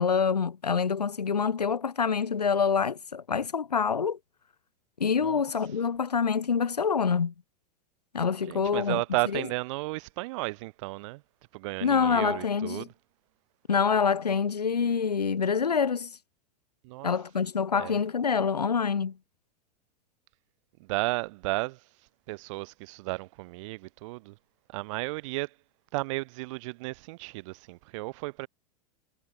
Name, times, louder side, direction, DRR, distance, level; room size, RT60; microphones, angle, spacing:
voice 1, 0.0-4.2 5.0-7.3 8.1-9.0 9.3-9.4 11.8-12.9 13.7-16.1 17.0-19.2, left 6 dB, 80° left, 1.4 m, -26 dB
voice 2, 8.5-11.2 11.5-12.9 16.8-17.1 17.7-18.0 20.8-21.8 22.3-24.4 24.7-25.5 25.9-28.5, right 23 dB, 50° right, 5.2 m, -33 dB
figure-of-eight pair, 95°, 20 cm